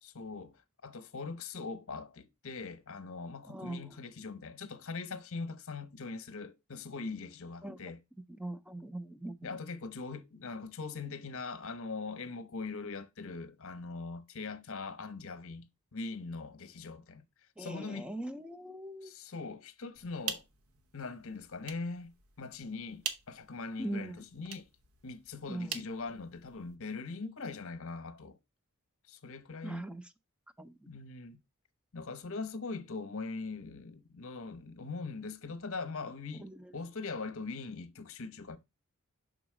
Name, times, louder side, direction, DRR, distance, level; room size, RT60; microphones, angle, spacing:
voice 1, 0.0-8.0 9.4-17.2 17.6-18.1 19.0-20.4 20.9-22.1 22.4-24.7 25.0-28.4 29.1-29.8 30.9-31.4 31.9-38.6, left 4 dB, 65° left, 0.8 m, -41 dB
voice 2, 3.5-3.9 7.6-7.8 8.4-9.6 17.6-19.1 23.8-24.2 25.5-25.8 29.6-30.0 30.6-30.9 36.4-36.7, right 1 dB, 5° right, 0.4 m, -41 dB
sound 1, 19.9-26.8, right 6 dB, 75° right, 0.9 m, -45 dB
6.0 x 3.9 x 4.8 m
head